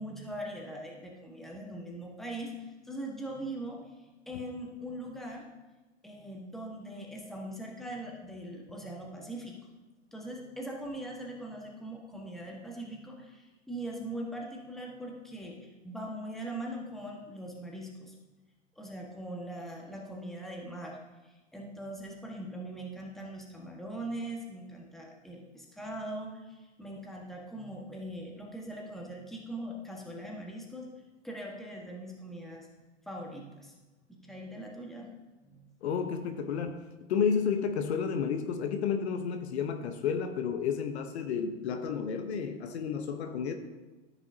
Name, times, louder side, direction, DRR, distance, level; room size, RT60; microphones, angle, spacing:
voice 1, 0.0-3.9 4.3-5.5 6.0-9.5 10.1-18.1 18.7-21.0 21.2-30.9 31.2-32.7 33.1-33.7 34.1-35.1 35.4-35.7, right 1 dB, ahead, -1 dB, 1.4 m, -41 dB
voice 2, 35.8-43.5, left 6 dB, 60° left, 6 dB, 1.0 m, -31 dB
14.0 x 6.0 x 2.8 m, 1.2 s
hypercardioid pair, 110°, 37 cm